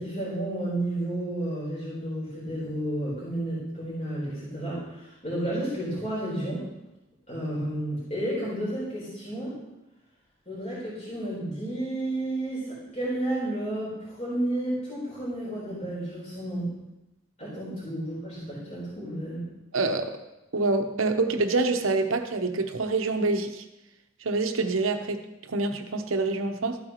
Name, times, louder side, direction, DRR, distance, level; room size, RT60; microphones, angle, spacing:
voice 1, 0.0-6.6 7.3-9.5 10.5-16.7 17.4-19.4, right 1 dB, 35° left, -8 dB, 4.0 m, -31 dB
voice 2, 19.7-20.2 20.5-23.6 24.2-25.2 25.5-26.8, right 3 dB, 80° right, 6 dB, 0.9 m, -26 dB
13.0 x 8.8 x 3.0 m, 0.97 s
head